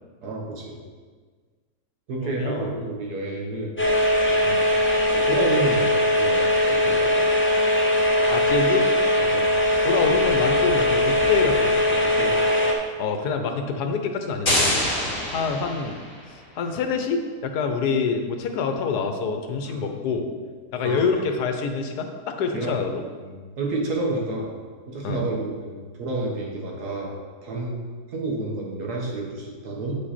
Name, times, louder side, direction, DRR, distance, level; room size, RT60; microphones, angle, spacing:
voice 1, 0.2-0.8 2.1-3.7 5.1-5.9 6.2-7.2 9.2-9.5 12.0-12.4 15.0-15.2 19.7-19.8 20.8-21.2 22.5-22.8 23.2-24.6 24.9-27.1 27.4-27.8 28.1-29.9, right 2 dB, 75° right, -1 dB, 1.8 m, -30 dB
voice 2, 2.2-2.7 4.5-4.6 8.3-8.8 9.8-12.0 13.0-14.8 15.3-16.0 16.3-20.2 20.7-23.0 25.0-25.2, left 5 dB, 80° left, 5 dB, 1.3 m, -26 dB
sound 1, 3.8-12.7, left 1 dB, 15° left, 0.5 m, -20 dB
sound 2, 14.5-16.3, left 1 dB, 35° left, 2.3 m, -25 dB
8.3 x 5.3 x 4.2 m, 1.6 s
omnidirectional pair, 1.7 m